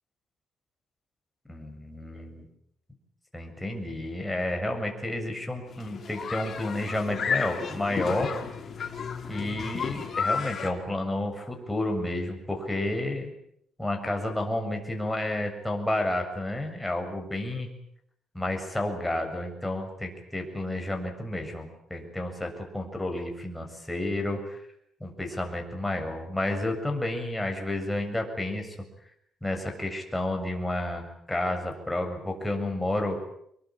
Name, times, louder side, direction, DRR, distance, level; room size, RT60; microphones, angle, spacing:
voice 1, 1.5-2.5 3.3-8.3 9.3-13.3 13.8-17.7 18.3-24.6 25.0-28.8 29.4-33.2, left 1 dB, 5° left, 3 dB, 7.3 m, -31 dB
sound 1, 5.7-10.7, left 6 dB, 40° left, 5.2 m, -32 dB
27.0 x 22.5 x 8.9 m, 0.73 s
cardioid pair, 130°, 0 cm